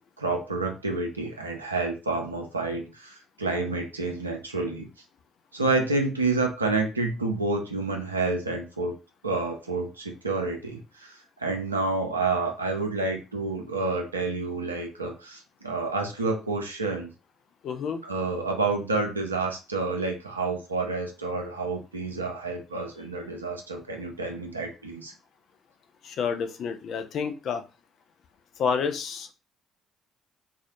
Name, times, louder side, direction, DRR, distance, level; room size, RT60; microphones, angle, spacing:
voice 1, 0.2-4.9 5.5-8.9 9.2-17.1 18.0-25.1, right 3 dB, 90° right, 3 dB, 0.4 m, -29 dB
voice 2, 17.6-18.0 26.0-27.6 28.6-29.3, left 6 dB, 55° left, 9 dB, 0.4 m, -29 dB
2.3 x 2.0 x 2.8 m, 0.30 s
figure-of-eight pair, 50°, 0 cm